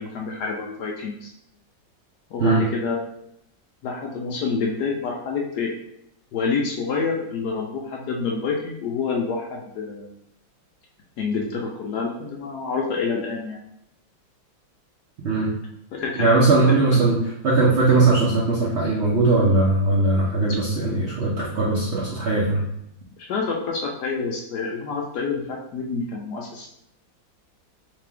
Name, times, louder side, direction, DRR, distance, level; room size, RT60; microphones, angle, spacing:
voice 1, 0.0-1.3 2.3-3.0 3.8-5.7 6.3-10.1 11.2-13.6 15.9-16.3 16.7-17.0 23.2-26.7, left 4 dB, 75° left, 0 dB, 1.0 m, -27 dB
voice 2, 16.2-22.6, right 3 dB, 60° right, -7 dB, 0.7 m, -19 dB
3.3 x 3.3 x 3.5 m, 0.77 s
omnidirectional pair, 2.1 m